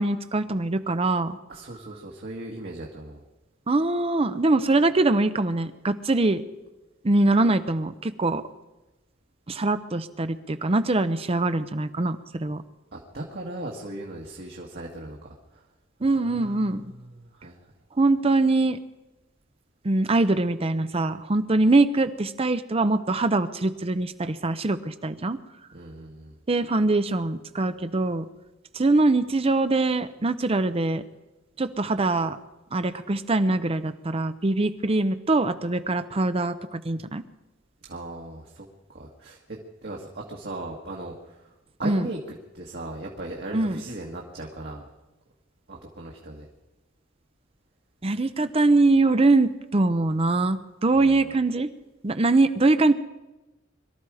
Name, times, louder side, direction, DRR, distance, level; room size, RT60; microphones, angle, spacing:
voice 1, 0.0-1.4 3.7-6.4 7.0-8.4 9.5-12.6 16.0-16.8 18.0-18.8 19.8-25.4 26.5-28.3 28.7-31.0 31.6-32.4 32.7-37.2 41.8-42.1 43.5-43.8 48.0-51.7 52.0-52.9, right 2 dB, 30° right, 11 dB, 0.6 m, -23 dB
voice 2, 1.5-3.2 12.9-15.6 16.1-17.6 25.7-26.4 37.8-41.5 41.8-42.2 42.5-44.8 45.7-46.5 51.0-51.3, right 2 dB, 55° right, -1 dB, 1.8 m, -38 dB
23.0 x 13.0 x 4.9 m, 1.0 s
head